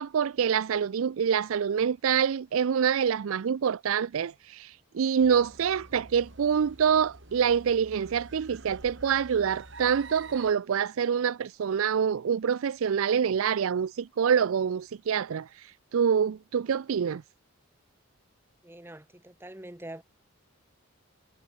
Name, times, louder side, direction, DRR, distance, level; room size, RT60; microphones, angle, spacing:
voice 1, 0.0-15.5 15.9-17.2, right 7 dB, 75° right, 0.4 m, -26 dB
sound 1, 5.2-10.5, right 2 dB, 55° right, 3.3 m, -48 dB
voice 2, 18.6-20.0, right 1 dB, 10° right, 1.0 m, -44 dB
head